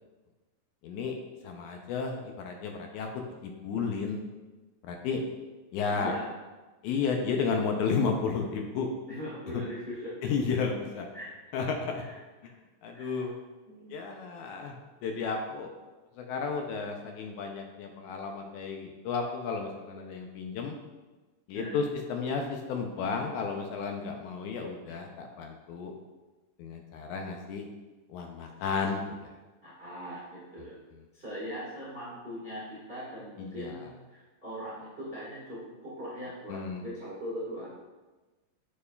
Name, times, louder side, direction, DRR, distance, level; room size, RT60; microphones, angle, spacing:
voice 1, 0.8-1.2 1.4-4.2 4.8-5.2 5.7-6.2 6.8-8.9 9.5-9.6 10.2-11.1 11.5-12.0 12.4-12.5 12.8-13.3 13.9-14.7 15.0-15.7 16.2-20.7 21.5-21.8 22.1-25.9 26.6-27.7 28.1-29.3 33.4-33.7 36.5-36.8, left 5 dB, 85° left, 3 dB, 1.7 m, -32 dB
voice 2, 5.9-6.3 9.1-10.1 11.1-11.3 11.9-12.2 12.9-13.3 13.7-13.9 14.4-14.5 21.5-21.8 29.6-30.8 31.1-37.7, equal, 45° right, -8 dB, 0.7 m, -40 dB
8.1 x 5.4 x 2.3 m, 1.2 s
omnidirectional pair, 4.1 m